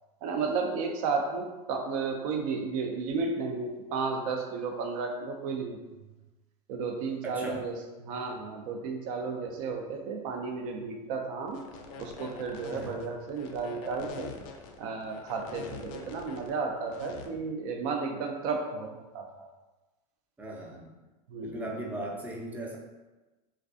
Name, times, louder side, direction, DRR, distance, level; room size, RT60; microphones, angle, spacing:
voice 1, 0.2-5.8 6.7-7.7 8.0-11.6 12.0-14.3 14.8-19.5 21.3-21.7, right 4 dB, 65° right, 3 dB, 0.5 m, -33 dB
voice 2, 7.2-7.6 12.7-13.1 20.4-21.0 21.4-22.8, right 1 dB, 10° right, -1 dB, 0.4 m, -38 dB
sound 1, 11.5-17.3, left 5 dB, 60° left, 0.4 m, -45 dB
2.4 x 2.2 x 2.5 m, 1.1 s
hypercardioid pair, 100°, 20 cm